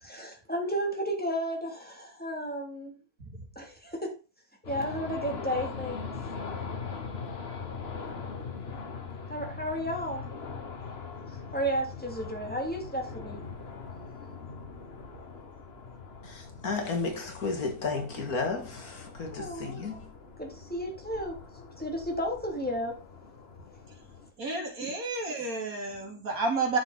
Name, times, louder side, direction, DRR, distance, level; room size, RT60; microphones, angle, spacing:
voice 1, 0.0-3.0 3.6-4.1 4.6-6.0 9.3-10.2 11.5-13.4 19.3-19.8 20.4-23.0 24.8-24.9, equal, 5° left, 2.6 m, -33 dB
sound 1, 4.6-24.3, left 5 dB, 45° left, 1.5 m, -41 dB
voice 2, 16.2-20.1, left 4 dB, 75° left, 2.4 m, -33 dB
voice 3, 24.4-26.8, right 3 dB, 70° right, 3.4 m, -31 dB
10.0 x 7.0 x 4.0 m
omnidirectional pair, 1.6 m